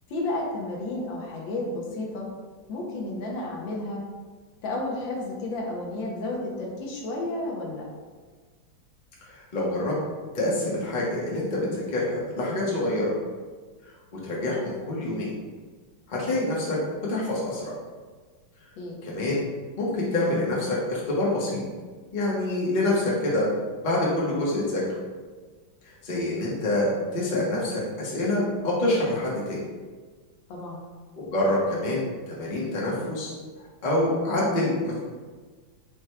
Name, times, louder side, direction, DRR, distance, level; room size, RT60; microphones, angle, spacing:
voice 1, 0.1-2.3 2.7-4.0 4.6-7.8 18.8-19.0 30.5-30.8, left 2 dB, 70° left, -2 dB, 1.4 m, -32 dB
voice 2, 9.3-9.9 10.3-13.1 14.1-15.3 16.1-16.8 17.1-17.7 19.0-19.5 19.8-21.6 22.1-23.5 23.8-24.8 25.8-29.6 31.2-33.3 33.8-35.0, left 1 dB, 50° left, -5 dB, 0.5 m, -26 dB
4.8 x 2.2 x 4.5 m, 1.4 s
omnidirectional pair, 2.4 m